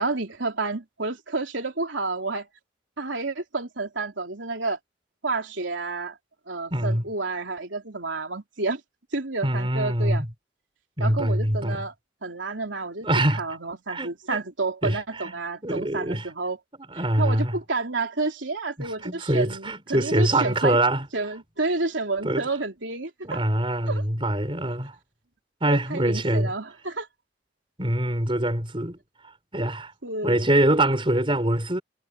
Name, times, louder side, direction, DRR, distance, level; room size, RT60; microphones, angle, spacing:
voice 1, 0.0-2.5 3.0-4.8 5.2-6.2 6.5-8.8 9.1-10.2 11.0-11.9 12.2-13.1 13.4-16.6 17.2-20.8 21.1-23.4 23.9-24.0 25.6-27.1 30.0-30.5, right 3 dB, 85° right, 3.6 m, -30 dB
voice 2, 6.7-7.0 9.4-10.3 11.0-11.8 13.0-13.4 13.9-14.4 14.8-15.3 15.6-16.3 16.9-17.5 18.8-21.1 22.2-22.5 23.2-24.9 25.6-26.5 27.8-29.0 29.5-29.9 30.2-31.8, right 1 dB, 30° right, 4.7 m, -24 dB
head